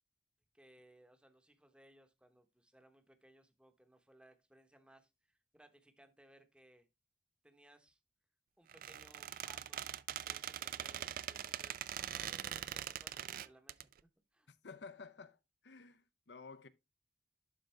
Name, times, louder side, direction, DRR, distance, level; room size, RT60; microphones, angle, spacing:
voice 1, 0.5-6.9 7.4-8.0 8.6-13.9 14.3-14.5, right 1 dB, 5° right, 0.9 m, -64 dB
Squeak, 8.7-13.8, right 11 dB, 50° right, 0.3 m, -42 dB
voice 2, 14.5-16.7, left 4 dB, 70° left, 0.7 m, -53 dB
11.5 x 3.9 x 3.3 m
head